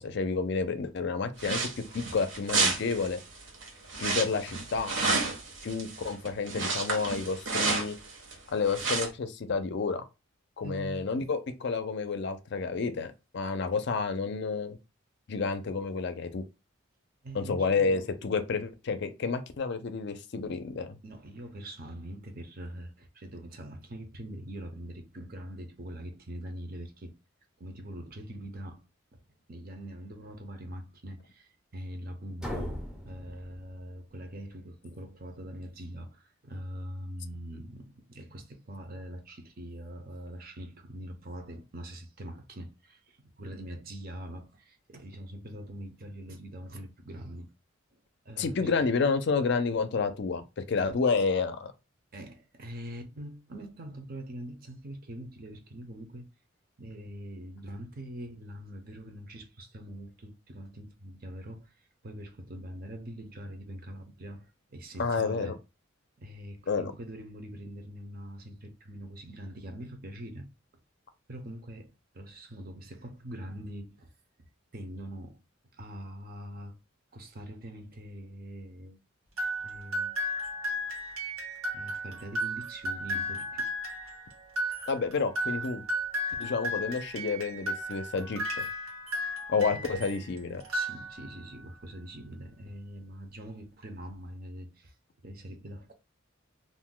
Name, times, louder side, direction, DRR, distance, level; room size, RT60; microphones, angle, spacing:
voice 1, 0.0-3.2 4.0-5.0 5.6-7.9 8.5-10.0 10.6-14.8 15.3-16.4 17.3-21.0 48.4-51.7 65.0-65.5 66.7-66.9 84.9-85.8 86.4-88.7 89.5-90.6, left 4 dB, 55° left, 0.4 m, -30 dB
sound 1, 1.4-8.3 8.6-9.1, right 3 dB, 65° right, 0.9 m, -31 dB
voice 2, 10.6-11.3 17.2-18.1 21.0-27.2 27.6-29.2 29.5-47.5 48.3-48.7 52.1-56.3 56.8-61.7 62.0-65.6 66.2-70.5 71.3-74.1 74.7-75.4 75.7-76.8 77.1-79.0 79.6-80.1 81.7-83.7 89.7-89.9 90.7-94.9 95.2-95.9, right 1 dB, 45° right, 0.6 m, -43 dB
sound 2, 32.4-34.3, equal, 5° right, 0.5 m, -39 dB
sound 3, 79.4-90.2 90.6-91.5, equal, 85° right, 1.1 m, -34 dB
2.5 x 2.1 x 3.6 m
head